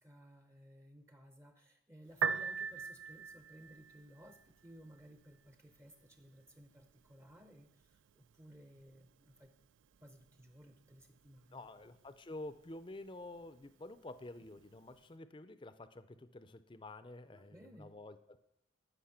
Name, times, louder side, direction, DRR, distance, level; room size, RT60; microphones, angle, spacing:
voice 1, 0.0-9.5 10.0-11.7 17.3-17.9, equal, 15° right, 7 dB, 0.6 m, -58 dB
Piano, 2.1-15.1, right 6 dB, 80° right, 0.4 m, -46 dB
voice 2, 11.5-18.4, left 2 dB, 25° left, 13 dB, 0.5 m, -49 dB
13.5 x 6.2 x 5.8 m, 0.80 s
head